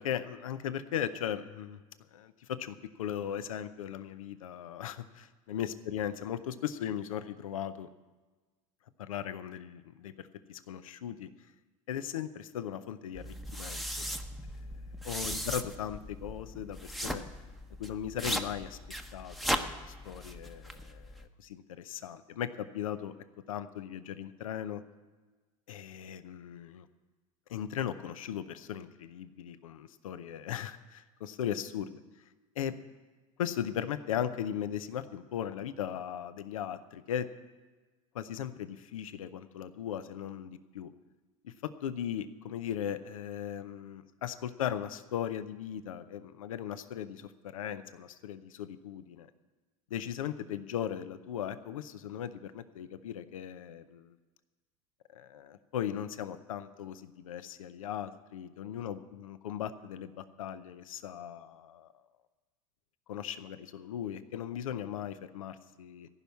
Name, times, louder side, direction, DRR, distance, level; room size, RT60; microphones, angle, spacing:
voice 1, 0.0-1.8 2.1-7.9 9.0-11.3 11.9-14.0 15.0-17.2 17.8-18.8 19.1-21.1 21.4-23.1 23.5-24.8 25.7-26.9 27.5-32.0 32.6-32.7 33.4-37.3 38.1-40.9 41.4-49.3 49.9-54.2 55.1-61.9 63.1-66.1, left 9 dB, 80° left, 13 dB, 0.7 m, -38 dB
sound 1, 13.1-21.3, equal, ahead, 0.8 m, -38 dB
15.0 x 5.7 x 9.3 m, 1.3 s
hypercardioid pair, 85°, 17 cm